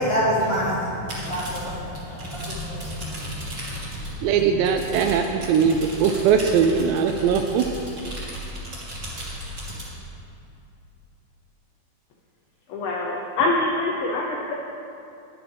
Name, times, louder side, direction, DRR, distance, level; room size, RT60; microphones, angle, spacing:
voice 1, 0.0-3.0, equal, 50° left, -9 dB, 1.7 m, -26 dB
sound 1, 1.1-10.0, equal, 25° right, 1.5 m, -36 dB
voice 2, 4.2-7.6, right 7 dB, 85° right, 5 dB, 2.6 m, -20 dB
voice 3, 12.7-14.5, left 2 dB, 80° left, -1 dB, 2.1 m, -25 dB
20.5 x 7.4 x 3.5 m, 2.7 s
omnidirectional pair, 5.3 m